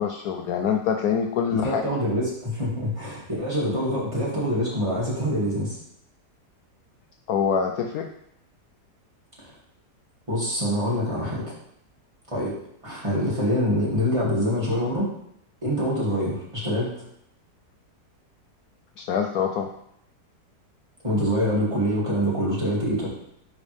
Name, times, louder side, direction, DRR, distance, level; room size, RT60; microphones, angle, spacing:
voice 1, 0.0-2.0 7.3-8.1 19.0-19.7, left 7 dB, 70° left, 4 dB, 0.9 m, -25 dB
voice 2, 1.5-5.8 9.4-9.5 10.3-11.5 12.3-12.5 12.8-15.1 15.6-17.0 21.0-23.1, equal, 20° right, -6 dB, 2.2 m, -25 dB
10.5 x 4.0 x 3.3 m, 0.73 s
omnidirectional pair, 1.8 m